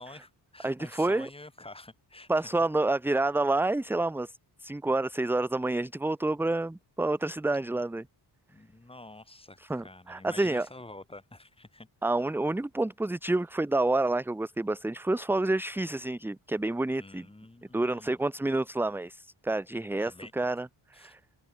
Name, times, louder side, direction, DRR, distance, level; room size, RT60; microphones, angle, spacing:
voice 1, 0.0-2.5 7.6-7.8 8.5-11.9 17.0-18.2 20.0-20.3 20.9-21.1, left 2 dB, 10° left, 3.2 m, -48 dB
voice 2, 0.6-1.3 2.3-4.3 4.6-8.1 9.6-10.7 12.0-17.3 17.7-21.2, right 2 dB, 5° right, 0.5 m, -28 dB
wide cardioid pair, 145°, 46 cm